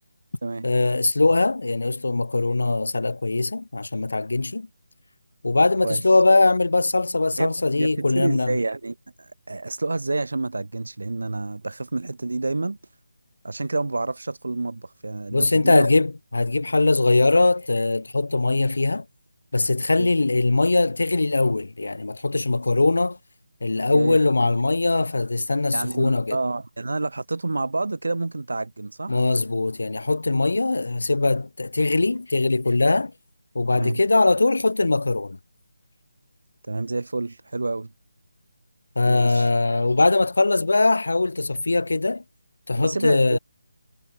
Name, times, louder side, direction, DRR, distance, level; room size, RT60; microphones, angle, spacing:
voice 1, 0.6-4.7 5.4-8.6 15.3-19.1 19.5-23.2 23.6-26.4 29.1-33.1 33.6-35.4 39.0-42.2 42.7-43.4, left 2 dB, 85° left, 1.8 m, -21 dB
voice 2, 7.4-12.8 13.4-15.9 20.0-20.1 23.9-24.2 25.7-29.2 33.7-34.0 36.7-37.9 39.0-39.5 42.8-43.4, right 3 dB, 80° right, 1.4 m, -28 dB
figure-of-eight pair, 180°, 0 cm